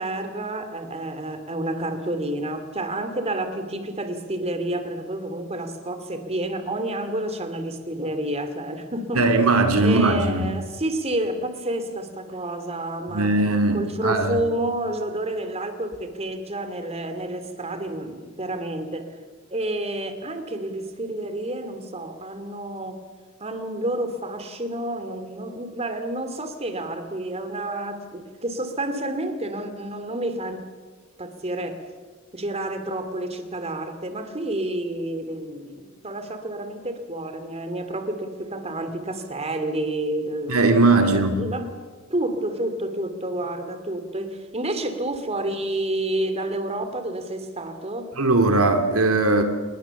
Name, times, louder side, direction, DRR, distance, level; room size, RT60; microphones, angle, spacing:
voice 1, 0.0-9.3 9.8-19.2 19.5-23.0 23.4-30.6 31.2-31.8 32.3-40.6 41.0-41.8 42.1-48.1, right 1 dB, 30° right, 9 dB, 2.8 m, -29 dB
voice 2, 9.2-10.5 13.1-14.4 40.5-41.4 48.2-49.4, right 2 dB, 75° right, 6 dB, 2.4 m, -19 dB
26.5 x 21.5 x 7.2 m, 1.4 s
head